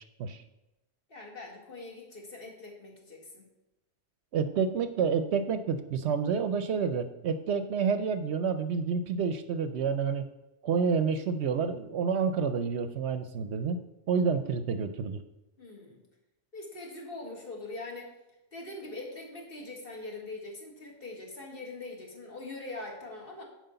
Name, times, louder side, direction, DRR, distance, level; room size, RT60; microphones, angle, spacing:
voice 1, 1.1-3.5 15.6-16.0 16.5-18.1 18.5-23.4, left 2 dB, 50° left, 0 dB, 1.9 m, -42 dB
voice 2, 4.3-10.3 10.6-13.8 14.1-15.2, right 6 dB, 70° right, 10 dB, 0.8 m, -29 dB
7.6 x 4.9 x 6.8 m, 0.94 s
omnidirectional pair, 1.3 m